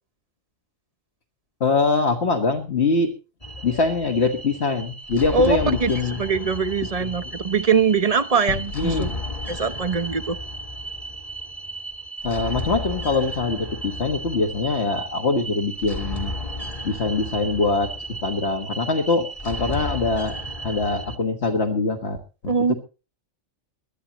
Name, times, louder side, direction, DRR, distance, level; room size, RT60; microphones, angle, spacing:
voice 1, 1.6-3.1 3.6-6.2 8.7-9.2 12.2-16.3 16.8-20.3 20.6-22.2 22.4-22.7, left 3 dB, 60° left, 1.8 m, -23 dB
sound 1, 3.4-21.2, equal, 30° left, 1.7 m, -34 dB
voice 2, 5.3-5.9 6.2-9.1 9.5-10.4 22.5-22.7, right 5 dB, 35° right, 0.8 m, -22 dB
sound 2, 8.5-10.4 10.8-10.9, left 7 dB, 80° left, 1.4 m, -38 dB
22.5 x 13.0 x 3.0 m
omnidirectional pair, 1.3 m